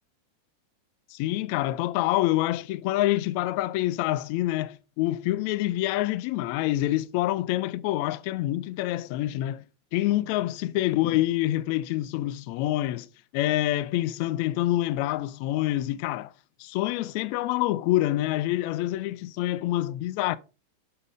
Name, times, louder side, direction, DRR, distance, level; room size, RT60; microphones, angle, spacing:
voice 1, 1.1-9.7 9.9-16.3 16.6-20.4, left 15 dB, 45° left, 0.5 m, -26 dB
6.5 x 6.4 x 3.6 m
figure-of-eight pair, 90°, 0 cm